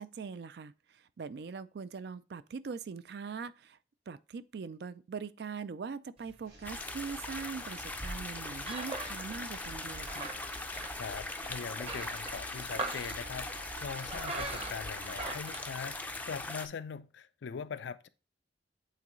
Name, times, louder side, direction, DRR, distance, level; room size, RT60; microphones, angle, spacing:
voice 1, 0.0-3.8 4.1-10.3, right 5 dB, 60° right, 0.4 m, -42 dB
sound 1, 6.2-16.5, right 2 dB, 30° right, 0.9 m, -43 dB
sound 2, 6.4-15.3, right 1 dB, 80° right, 3.6 m, -50 dB
sound 3, 6.6-16.7, left 2 dB, 10° left, 0.4 m, -41 dB
voice 2, 11.0-18.1, left 6 dB, 80° left, 0.4 m, -41 dB
8.4 x 3.8 x 3.0 m
head